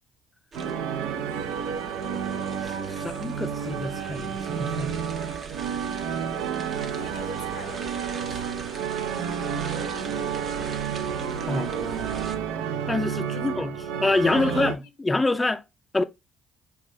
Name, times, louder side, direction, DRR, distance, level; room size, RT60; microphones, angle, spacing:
sound 1, 0.5-12.4, right 5 dB, 50° right, 0.7 m, -41 dB
sound 2, 0.5-14.7, right 7 dB, 85° right, 0.4 m, -30 dB
voice 1, 2.6-4.9 11.5-11.7 12.9-13.7 14.0-15.6 15.9-16.0, left 2 dB, 20° left, 0.3 m, -26 dB
voice 2, 6.8-8.6 13.2-13.7 14.3-14.7, left 5 dB, 90° left, 0.8 m, -44 dB
4.7 x 2.2 x 3.1 m
supercardioid pair, 65°, 0 cm